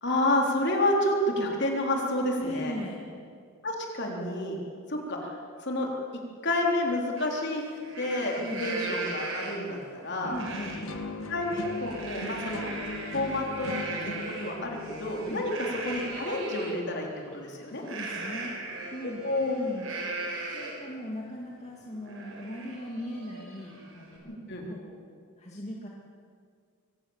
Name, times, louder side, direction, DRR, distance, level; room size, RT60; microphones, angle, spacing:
voice 1, 0.0-2.7 3.6-4.6 4.9-5.9 6.4-7.6 8.0-10.4 11.3-12.7 13.1-14.1 14.4-17.8 19.2-19.5 24.3-24.6, left 1 dB, 55° left, 0 dB, 3.7 m, -29 dB
voice 2, 2.4-3.1 8.4-8.7 10.3-10.8 15.3-15.4 17.8-18.6 18.9-19.3 19.6-19.9 20.5-24.4 24.7-25.0 25.4-25.9, equal, 30° left, -2 dB, 2.2 m, -38 dB
Livestock farm animals working animals, 7.2-7.3 7.7-9.8 10.3-10.8 11.2-16.7 17.8-20.9 21.4-21.5 21.8-24.2, right 3 dB, 65° right, 5.2 m, -38 dB
sound 1, 10.2-16.2, left 2 dB, 80° left, 2.0 m, -40 dB
23.5 x 17.5 x 7.3 m, 2.2 s
head